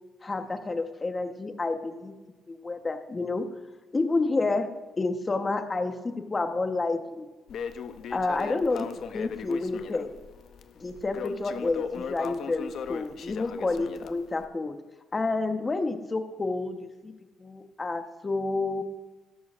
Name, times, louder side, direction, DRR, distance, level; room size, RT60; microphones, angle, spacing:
voice 1, 0.2-2.1 2.5-3.5 3.9-7.3 8.1-10.1 10.8-14.8 15.1-17.1 17.4-18.8, left 3 dB, 25° left, 7 dB, 1.1 m, -29 dB
Crackle, 7.5-14.4, left 7 dB, 65° left, 0.7 m, -38 dB
12.5 x 12.5 x 2.6 m, 1.2 s
cardioid pair, 90°, 0 cm